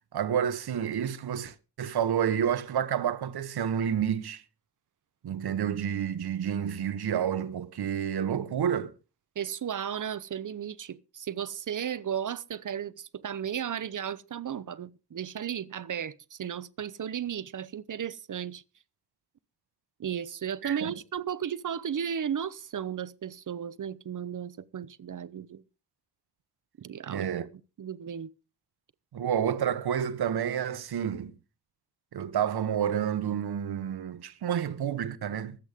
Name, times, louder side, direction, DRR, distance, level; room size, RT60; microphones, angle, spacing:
voice 1, 0.1-4.4 5.2-8.9 20.6-20.9 27.1-27.5 29.1-31.3 32.1-35.6, right 8 dB, 70° right, 1.4 m, -29 dB
voice 2, 9.4-18.6 20.0-25.6 26.8-27.5 27.8-28.3, right 8 dB, 50° right, 0.9 m, -35 dB
24.0 x 8.4 x 3.7 m
cardioid pair, 95°, 40 cm